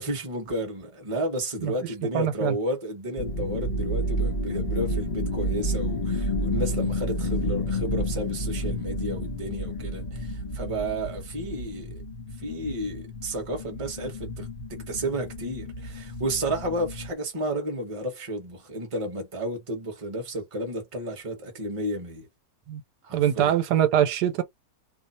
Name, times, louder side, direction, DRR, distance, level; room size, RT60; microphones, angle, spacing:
voice 1, 0.0-12.0 12.4-22.3 23.0-23.5, right 1 dB, 25° right, 0.8 m, -32 dB
voice 2, 2.1-2.5 22.7-22.8 23.1-24.4, right 10 dB, 90° right, 1.3 m, -23 dB
sound 1, 3.2-17.1, left 1 dB, 40° left, 0.7 m, -30 dB
2.7 x 2.1 x 4.1 m
omnidirectional pair, 1.7 m